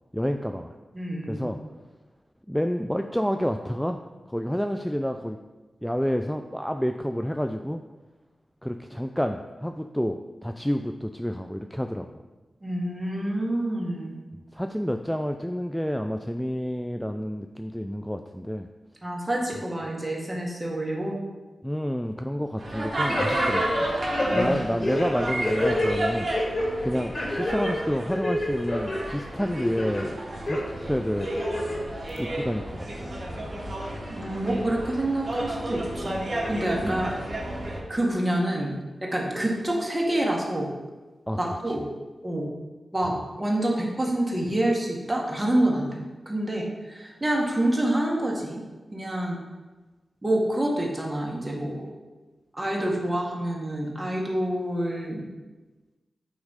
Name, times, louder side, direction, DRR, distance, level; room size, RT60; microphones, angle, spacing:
voice 1, 0.1-0.7 1.3-1.6 2.5-4.0 4.3-5.4 5.8-7.8 8.6-12.2 14.5-18.7 21.6-23.6 24.3-26.3 26.8-30.2 30.4-31.3 32.2-33.1 36.8-37.1 41.3-41.4 41.7-41.8, equal, 5° left, 6 dB, 0.3 m, -29 dB
voice 2, 0.9-1.5 12.6-14.2 19.0-21.2 24.2-24.6 34.1-36.2 36.5-37.2 37.9-38.7 39.0-40.7 41.4-41.9 42.2-42.5 42.9-45.9 46.2-48.6 48.9-49.4 50.2-51.9 52.5-55.2, right 1 dB, 20° right, -1 dB, 1.7 m, -27 dB
sound 1, 22.6-37.8, right 1 dB, 50° right, 1.9 m, -32 dB
sound 2, 23.1-23.8 24.1-25.9 26.3-26.7 27.1-27.7 28.1-29.0 29.4-30.0 30.5-30.6 31.2-31.8 32.2-32.3, left 1 dB, 55° left, 2.2 m, -27 dB
8.1 x 3.1 x 5.1 m, 1.2 s
cardioid pair, 40°, 0 cm